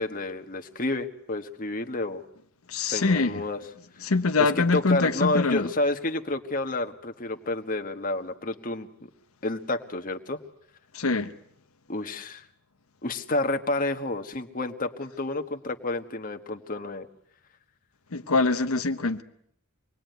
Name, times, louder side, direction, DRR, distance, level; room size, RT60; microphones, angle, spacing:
voice 1, 0.0-2.2 2.9-3.6 4.4-8.9 9.4-10.4 11.9-12.5 13.0-17.1, left 2 dB, 40° left, 1.4 m, -30 dB
voice 2, 2.7-3.4 4.0-5.7 10.9-11.3 18.1-19.2, left 3 dB, 80° left, 1.0 m, -24 dB
25.5 x 21.0 x 9.3 m
head